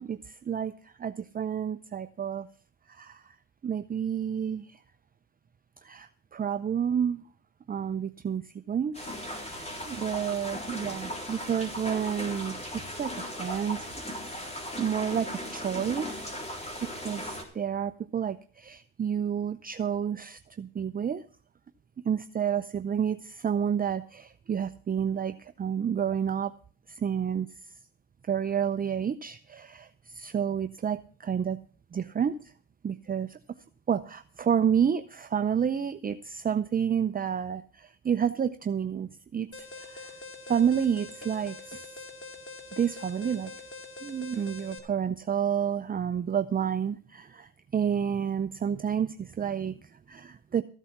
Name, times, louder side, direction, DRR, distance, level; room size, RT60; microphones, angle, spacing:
voice 1, 0.0-2.5 2.9-3.3 3.6-4.8 5.8-7.2 7.7-9.1 9.4-13.9 14.2-16.3 16.8-21.2 22.0-26.5 26.9-27.5 28.2-31.6 31.9-32.5 32.8-33.4 33.9-40.1 40.5-41.9 42.8-43.5 44.0-50.6, right 8 dB, 30° right, 11 dB, 0.6 m, -30 dB
sound 1, 8.9-17.4, left 1 dB, 20° left, 3.8 m, -37 dB
Alarm, 39.5-44.8, left 3 dB, 45° left, 2.7 m, -44 dB
14.5 x 8.2 x 5.8 m, 0.42 s
cardioid pair, 90°, 30 cm